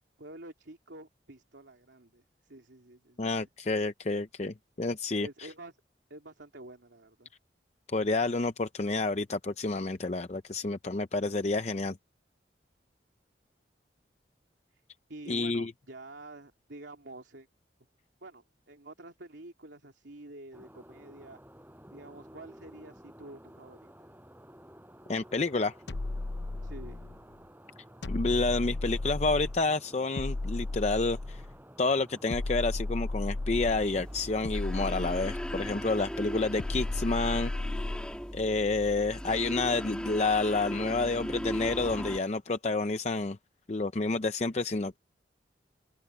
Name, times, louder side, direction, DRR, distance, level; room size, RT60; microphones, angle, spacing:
voice 1, 0.2-3.5 5.2-5.7 6.1-7.3 15.1-17.5 18.2-21.4 21.9-23.9 26.6-27.0, right 2 dB, 85° right, 3.0 m, -48 dB
voice 2, 3.2-5.3 7.9-12.0 15.3-15.7 25.1-25.7 28.1-31.4 31.8-37.5 38.3-43.4 43.7-45.0, left 3 dB, 40° left, 0.6 m, -29 dB
sound 1, 20.5-37.0, equal, 10° right, 5.5 m, -53 dB
sound 2, 25.9-27.2 28.0-29.7 30.2-31.6 32.3-33.9 34.4-35.8 36.6-38.2, left 2 dB, 80° left, 0.8 m, -34 dB
sound 3, 33.5-42.2, equal, 5° left, 2.7 m, -38 dB
open air
head